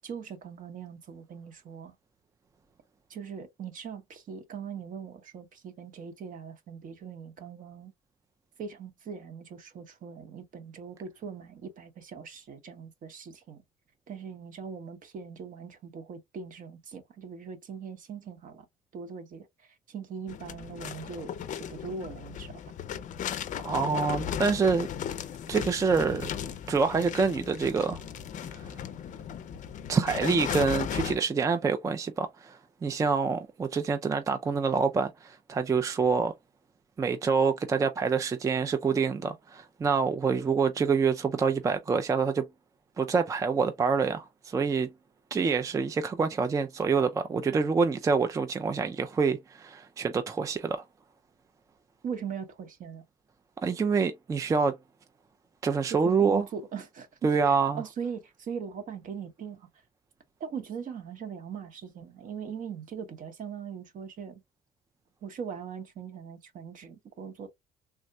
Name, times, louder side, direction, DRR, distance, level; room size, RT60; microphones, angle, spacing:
voice 1, 0.0-1.9 3.1-7.9 8.6-13.6 14.1-18.7 18.9-21.3 21.6-22.6 52.0-53.0 55.9-59.7 60.4-64.4 65.2-67.5, right 6 dB, 50° right, 0.9 m, -40 dB
sound 1, 20.3-31.2, left 9 dB, 50° left, 0.5 m, -36 dB
voice 2, 23.6-24.9 25.5-26.3 26.7-28.0 28.5-28.7 29.9-36.3 37.0-42.5 43.0-44.9 45.3-50.8 53.6-54.8 55.6-56.4 57.2-57.8, right 5 dB, 20° right, 0.3 m, -26 dB
3.4 x 2.1 x 2.6 m
cardioid pair, 110°, 17 cm